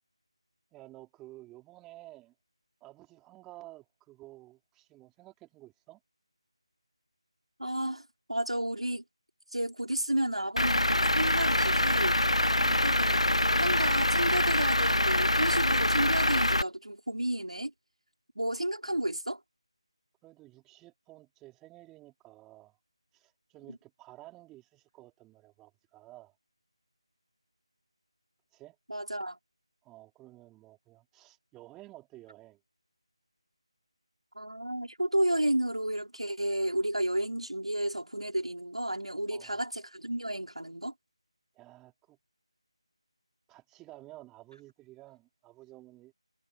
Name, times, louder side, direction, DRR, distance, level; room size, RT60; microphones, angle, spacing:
voice 1, 0.7-2.3 2.8-6.0 18.9-19.0 20.2-22.8 23.1-26.4 28.5-28.8 29.8-32.6 39.3-39.6 41.5-42.2 43.5-46.1, right 18 dB, 10° right, 3.7 m, -52 dB
voice 2, 7.6-8.0 8.3-9.0 9.5-12.2 12.8-13.2 13.5-17.7 18.3-19.4 23.7-23.8 28.9-29.4 34.3-40.9, right 1 dB, 90° right, 5.1 m, -32 dB
Truck / Idling, 10.6-16.6, left 1 dB, 90° left, 0.5 m, -25 dB
figure-of-eight pair, 160°, 3 cm